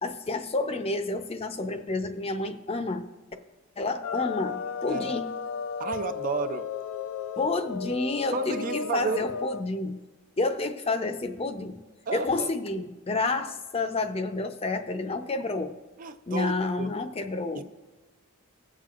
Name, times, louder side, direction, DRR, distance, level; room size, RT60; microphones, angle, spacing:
voice 1, 0.0-3.0 3.8-5.3 7.4-10.0 10.4-11.8 12.1-15.8 16.3-17.6, left 3 dB, 30° left, 0.5 m, -29 dB
sound 1, 4.0-9.6, left 6 dB, 85° left, 0.4 m, -34 dB
voice 2, 5.8-6.7 8.3-9.3 12.1-12.5 13.3-13.4 16.0-16.9 17.5-17.6, right 5 dB, 40° right, 0.4 m, -32 dB
21.5 x 7.5 x 2.4 m
head